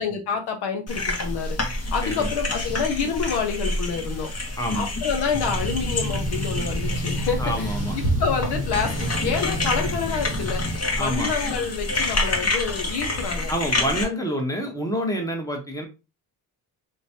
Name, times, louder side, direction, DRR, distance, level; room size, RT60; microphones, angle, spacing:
voice 1, 0.0-4.3 4.7-10.7 11.0-13.5, left 6 dB, 80° left, 3 dB, 1.1 m, -28 dB
sound 1, 0.9-14.0, left 1 dB, 40° left, 1.2 m, -28 dB
voice 2, 4.6-4.9 7.4-7.9 11.0-11.3 13.5-15.9, equal, 10° left, 3 dB, 1.1 m, -27 dB
sound 2, 5.3-10.8, right 1 dB, 20° right, 0.8 m, -30 dB
3.5 x 3.0 x 2.8 m, 0.28 s
cardioid pair, 90°, 39 cm